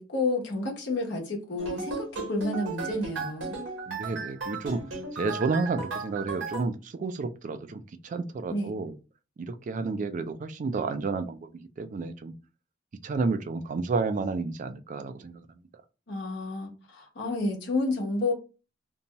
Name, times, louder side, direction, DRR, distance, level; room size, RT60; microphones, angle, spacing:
voice 1, 0.0-3.6 8.5-8.8 16.1-18.3, left 2 dB, 65° left, 1.0 m, -30 dB
sound 1, 1.6-6.6, right 4 dB, 85° right, 1.0 m, -36 dB
voice 2, 3.9-4.8 5.1-8.9 9.4-11.5 11.8-12.3 13.0-15.4, right 4 dB, 45° right, 0.3 m, -31 dB
2.7 x 2.2 x 2.9 m
head